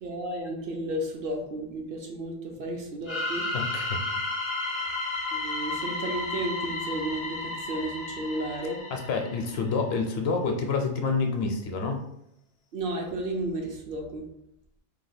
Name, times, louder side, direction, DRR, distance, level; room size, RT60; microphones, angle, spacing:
voice 1, 0.0-3.5 5.3-8.8 12.7-14.3, right 1 dB, 60° right, 1 dB, 0.7 m, -33 dB
sound 1, 3.1-9.7, left 2 dB, 40° left, 0.4 m, -33 dB
voice 2, 3.5-4.2 4.7-4.9 8.9-12.0, left 4 dB, 65° left, 3 dB, 0.7 m, -28 dB
2.8 x 2.3 x 4.0 m, 0.77 s
omnidirectional pair, 1.2 m